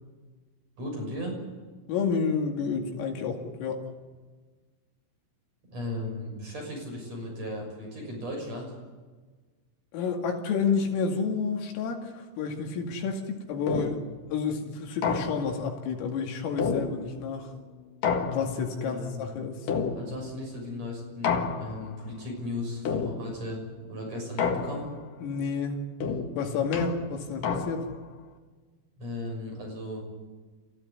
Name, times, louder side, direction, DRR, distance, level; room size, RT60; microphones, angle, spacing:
voice 1, 0.8-1.4 5.7-8.7 18.8-19.3 20.0-23.6 23.9-24.9 29.0-30.0, left 1 dB, 30° right, 0 dB, 7.3 m, -36 dB
voice 2, 1.9-3.9 9.9-14.0 14.3-17.5 18.2-19.7 25.2-25.8 26.4-27.9, left 5 dB, 75° left, 2 dB, 4.8 m, -30 dB
sound 1, 13.7-14.2 15.0-15.7 16.6-17.3 18.0-18.8 19.7-20.4 21.2-22.0 22.9-23.5 24.4-25.1 26.0-28.0, left 5 dB, 60° left, 2.6 m, -30 dB
27.0 x 15.5 x 9.7 m, 1.4 s
omnidirectional pair, 6.0 m